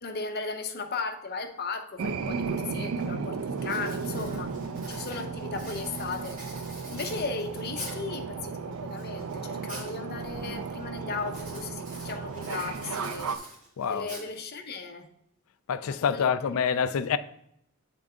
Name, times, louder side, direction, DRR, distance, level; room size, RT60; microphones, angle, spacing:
voice 1, 0.0-4.5 4.9-6.4 6.9-13.3 13.9-15.1 16.1-16.3, left 4 dB, 50° left, 0.8 m, -36 dB
sound 1, 2.0-13.4, right 5 dB, 90° right, 0.5 m, -35 dB
Writing, 3.0-3.3 3.6-8.2 8.7-10.0 10.3-10.7 11.3-14.7, right 1 dB, 40° right, 2.8 m, -45 dB
voice 2, 13.8-14.1 15.7-17.2, left 7 dB, 80° left, 0.4 m, -26 dB
8.8 x 3.8 x 3.6 m
head